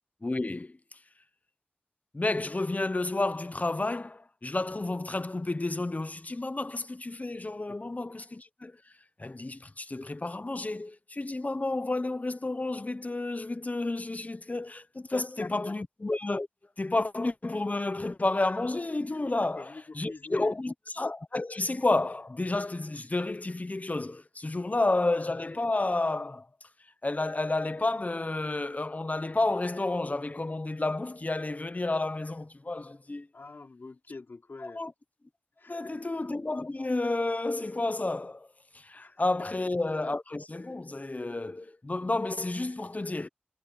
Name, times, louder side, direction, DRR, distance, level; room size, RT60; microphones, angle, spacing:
voice 1, 0.2-0.8 2.1-8.7 9.2-16.5 16.8-26.5 27.0-33.3 34.6-34.9 35.7-38.5 38.7-43.3, left 2 dB, 45° left, 0.9 m, -31 dB
voice 2, 15.1-15.8 19.1-20.6 24.5-24.6 33.3-34.8 35.6-36.0 38.9-39.1, left 3 dB, 90° left, 3.7 m, -45 dB
wide cardioid pair, 45°, 4 cm